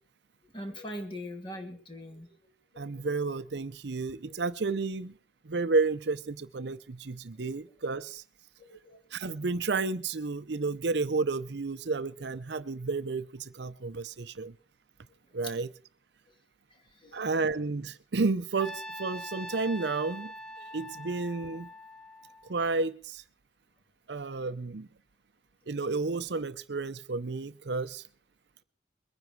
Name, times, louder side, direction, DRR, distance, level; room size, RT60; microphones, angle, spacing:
voice 1, 0.5-2.3 2.7-2.8 8.6-9.0 17.0-17.2, equal, 25° left, 4 dB, 2.5 m, -41 dB
voice 2, 2.8-5.1 5.4-8.2 9.1-14.5 15.3-15.7 17.1-20.3 20.7-21.7 22.5-23.2 24.1-24.9 25.7-28.0, right 3 dB, 65° right, 14 dB, 0.7 m, -31 dB
Trumpet, 18.6-22.8, equal, 5° left, 0.6 m, -43 dB
22.0 x 10.0 x 4.6 m, 0.41 s
head